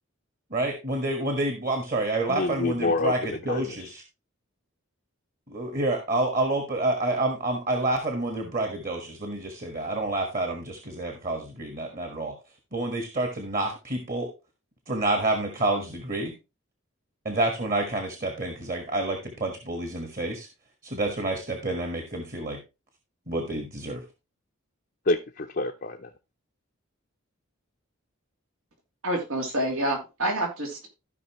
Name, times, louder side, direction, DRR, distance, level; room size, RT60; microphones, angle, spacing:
voice 1, 0.5-4.0 5.5-12.3 12.7-14.3 14.9-16.3 17.2-20.5 20.8-22.6 23.3-24.0, right 2 dB, 40° right, 1.5 m, -28 dB
voice 2, 2.3-3.9 25.1-26.1, left 3 dB, 45° left, 0.5 m, -28 dB
voice 3, 29.0-30.9, right 1 dB, 90° right, 2.9 m, -28 dB
15.0 x 5.4 x 3.1 m
head